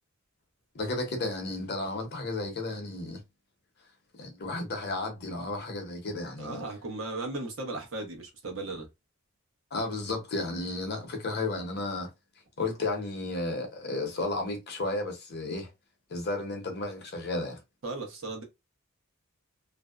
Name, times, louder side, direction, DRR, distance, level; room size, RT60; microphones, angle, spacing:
voice 1, 0.7-3.2 4.2-6.6 9.7-12.1 12.6-15.7 16.1-17.6, left 2 dB, 50° left, 0.7 m, -33 dB
voice 2, 6.4-8.9 17.8-18.4, right 2 dB, 60° right, 0.8 m, -36 dB
2.6 x 2.0 x 2.3 m
head